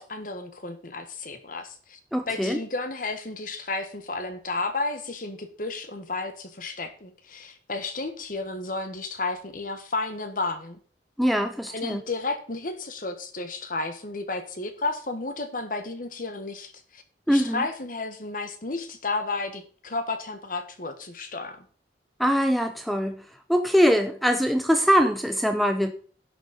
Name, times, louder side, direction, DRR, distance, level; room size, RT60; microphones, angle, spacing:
voice 1, 0.0-2.0 2.3-10.8 11.7-17.0 17.3-21.6, left 3 dB, 50° left, 8 dB, 1.4 m, -32 dB
voice 2, 2.1-2.6 11.2-12.0 17.3-17.6 22.2-25.9, equal, ahead, 7 dB, 0.6 m, -23 dB
11.0 x 6.4 x 5.2 m, 0.43 s
head